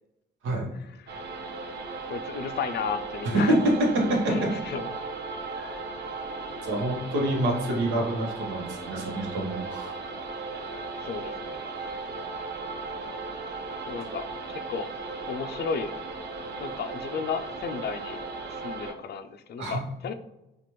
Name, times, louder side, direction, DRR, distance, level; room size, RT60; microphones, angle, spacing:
voice 1, 0.8-1.2 2.1-3.5 4.3-5.0 11.0-11.6 13.9-14.9 15.3-15.9 16.6-18.2 18.5-20.1, left 6 dB, 55° left, 9 dB, 0.4 m, -34 dB
sound 1, 1.1-18.9, right 3 dB, 55° right, 0.7 m, -36 dB
voice 2, 3.9-4.3 5.6-5.8 6.6-9.9 19.6-19.8, right 1 dB, 85° right, 0 dB, 1.0 m, -27 dB
4.1 x 2.4 x 3.1 m, 0.93 s
cardioid pair, 90°, 20 cm